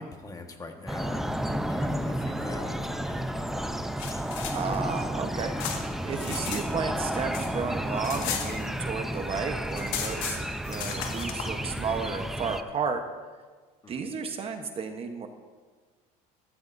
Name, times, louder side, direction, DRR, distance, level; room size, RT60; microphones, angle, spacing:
voice 1, 0.0-3.7 13.8-14.1, left 2 dB, 20° left, 4 dB, 1.4 m, -41 dB
sound 1, 0.9-12.6, right 1 dB, ahead, 0.5 m, -32 dB
sound 2, 3.9-6.6 6.9-9.1 9.4-9.5 9.7-11.5, left 8 dB, 85° left, 1.7 m, -36 dB
voice 2, 4.5-5.5 6.0-13.0 13.9-15.3, right 5 dB, 35° right, 6 dB, 1.0 m, -33 dB
14.5 x 14.5 x 2.6 m, 1.5 s
cardioid pair, 120°, 16 cm